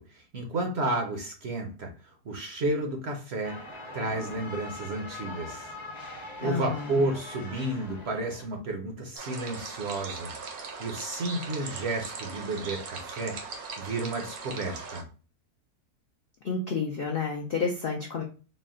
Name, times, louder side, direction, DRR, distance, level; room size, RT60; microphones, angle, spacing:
voice 1, 0.0-1.9 2.2-3.6 3.9-5.7 6.1-13.4 13.8-15.0, right 2 dB, 55° right, 2 dB, 0.8 m, -32 dB
sound 1, 3.4-8.5, left 2 dB, 35° left, 0.8 m, -42 dB
voice 2, 6.4-7.0 16.4-18.2, left 5 dB, 65° left, 1 dB, 0.5 m, -30 dB
sound 2, 9.2-15.0, right 4 dB, 75° right, 1.3 m, -39 dB
4.1 x 2.2 x 3.7 m, 0.36 s
omnidirectional pair, 1.6 m